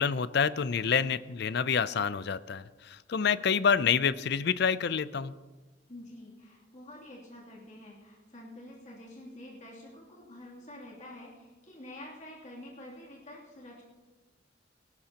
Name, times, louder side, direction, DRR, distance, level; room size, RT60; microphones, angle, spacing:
voice 1, 0.0-5.3, left 6 dB, 55° left, 16 dB, 0.4 m, -28 dB
voice 2, 5.9-13.8, left 1 dB, 40° left, -5 dB, 2.9 m, -48 dB
19.0 x 17.5 x 2.9 m, 1.2 s
head